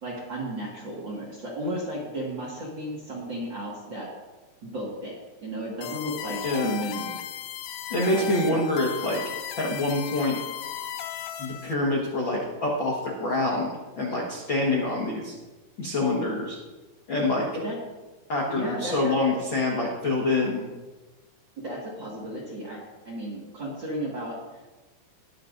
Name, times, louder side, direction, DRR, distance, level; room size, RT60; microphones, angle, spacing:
voice 1, 0.0-4.1 4.6-5.1 5.4-7.2 8.1-8.6 17.6-17.8 18.5-19.3 21.6-24.7, right 1 dB, 40° right, -4 dB, 1.7 m, -34 dB
sound 1, 5.8-11.7, left 10 dB, 75° left, 2.3 m, -36 dB
voice 2, 7.9-9.2 9.6-10.4 11.4-15.3 15.8-16.6 17.1-17.5 18.3-20.7, left 2 dB, 60° left, -3 dB, 1.2 m, -26 dB
20.5 x 8.5 x 2.6 m, 1.2 s
omnidirectional pair, 4.7 m